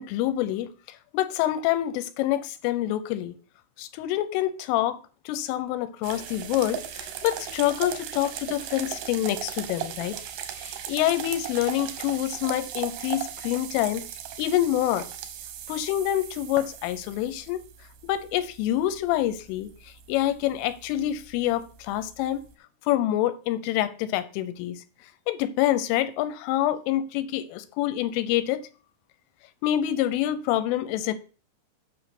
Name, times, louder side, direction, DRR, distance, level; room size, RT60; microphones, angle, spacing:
voice 1, 0.0-3.4 3.8-10.2 10.6-14.1 14.4-15.1 15.7-17.6 18.0-22.4 22.9-24.8 25.3-28.7 29.6-31.1, left 13 dB, 85° left, 3.2 m, -27 dB
sound 1, 6.0-22.5, right 10 dB, 75° right, 2.4 m, -38 dB
8.2 x 6.2 x 5.9 m
omnidirectional pair, 5.8 m